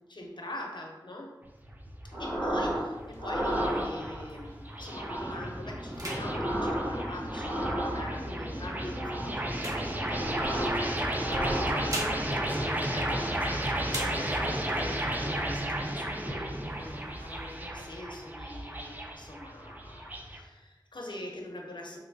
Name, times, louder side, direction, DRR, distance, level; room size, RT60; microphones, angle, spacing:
voice 1, 0.1-1.4 2.2-22.0, left 1 dB, 65° left, 0 dB, 0.6 m, -43 dB
sound 1, 1.4-20.4, right 1 dB, 20° right, 0.4 m, -34 dB
sound 2, 2.1-2.9 3.2-4.3 4.8-5.5 5.9-8.3 8.8-9.5 9.9-10.9 11.1-12.3 12.8-13.5, right 1 dB, 90° right, 1.1 m, -33 dB
sound 3, 2.6-4.8 5.3-5.5 5.9-7.8 8.5-10.6 11.5-13.5 13.8-14.7 15.2-15.3 15.5-16.2 16.7-17.6, right 1 dB, 45° right, 0.8 m, -42 dB
3.1 x 2.9 x 2.5 m, 1.2 s
wide cardioid pair, 45°, 8 cm